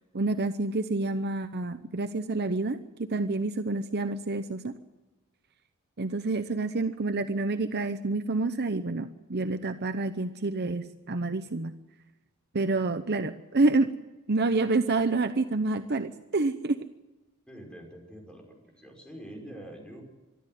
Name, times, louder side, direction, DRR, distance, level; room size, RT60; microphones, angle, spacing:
voice 1, 0.1-4.7 6.0-11.7 12.5-13.9 14.3-16.9, right 3 dB, 50° right, 9 dB, 0.9 m, -28 dB
voice 2, 17.5-20.0, right 1 dB, 5° left, 1 dB, 5.7 m, -45 dB
23.5 x 13.0 x 9.3 m, 1.1 s
head